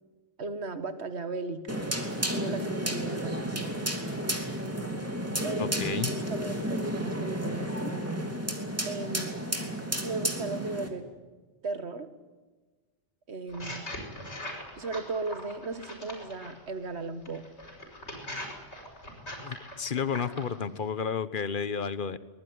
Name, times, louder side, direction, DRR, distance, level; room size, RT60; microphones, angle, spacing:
voice 1, 0.4-1.8 2.3-3.8 5.4-5.8 6.3-8.0 8.9-9.4 10.0-11.1 11.6-12.1 13.3-13.9 14.8-17.4, right 3 dB, 75° right, 10 dB, 1.8 m, -36 dB
sound 1, 1.7-10.9, equal, 15° right, 2.8 m, -32 dB
voice 2, 5.6-6.1 19.4-22.2, left 6 dB, 50° left, 15 dB, 1.2 m, -32 dB
sound 2, 13.5-16.6 17.3-20.6, left 1 dB, 90° left, 6.1 m, -41 dB
23.0 x 20.5 x 9.6 m, 1.3 s
omnidirectional pair, 1.1 m